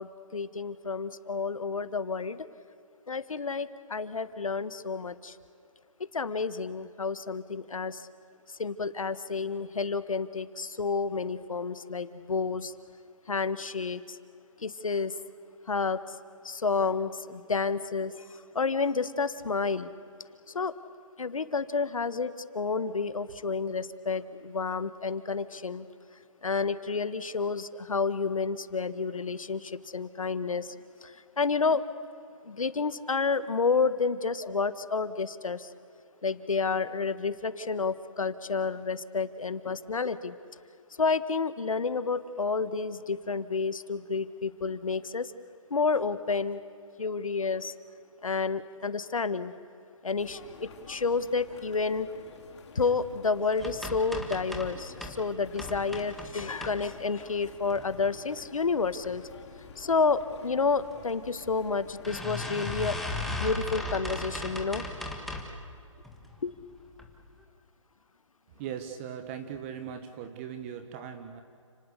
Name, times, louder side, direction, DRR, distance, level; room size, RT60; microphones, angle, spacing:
voice 1, 0.0-2.5 3.1-5.4 6.1-8.1 8.5-12.7 13.3-14.2 14.6-15.1 15.7-16.2 16.4-19.9 20.5-20.8 21.2-25.9 26.4-30.7 31.0-31.8 32.4-35.7 36.2-40.3 41.0-45.3 45.7-46.6 47.0-47.7 48.2-49.5 50.0-52.1 52.7-59.2 59.8-63.0 63.3-64.8 66.4-66.5, left 4 dB, 85° left, 13 dB, 1.6 m, -30 dB
sound 1, 50.2-63.1, left 5 dB, 55° left, 5.1 m, -50 dB
sound 2, 53.6-55.2 55.5-57.2 57.6-58.3 58.7-59.1 59.4-59.5 59.8-59.9 60.9-61.0 61.4-61.5 62.0-65.6 66.0-66.5 66.9-67.1 67.4-67.5, left 1 dB, ahead, 1.6 m, -37 dB
voice 2, 68.5-71.4, right 8 dB, 25° right, 8 dB, 1.3 m, -39 dB
30.0 x 19.0 x 8.3 m, 2.5 s
hypercardioid pair, 155°, 17 cm